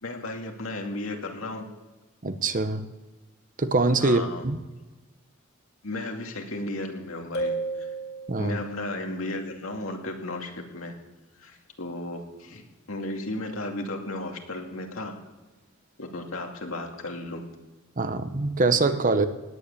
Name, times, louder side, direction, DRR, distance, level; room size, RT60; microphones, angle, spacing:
voice 1, 0.0-1.7 4.0-4.4 5.8-7.9 8.4-10.9 11.4-15.1 16.0-17.4, left 2 dB, 75° left, 2 dB, 2.4 m, -34 dB
voice 2, 2.2-2.9 3.6-4.6 8.3-8.6 18.0-19.3, right 3 dB, 40° right, 10 dB, 0.9 m, -24 dB
sound 1, 7.3-8.8, right 2 dB, 55° left, 3.1 m, -32 dB
19.0 x 8.1 x 8.5 m, 1.2 s
head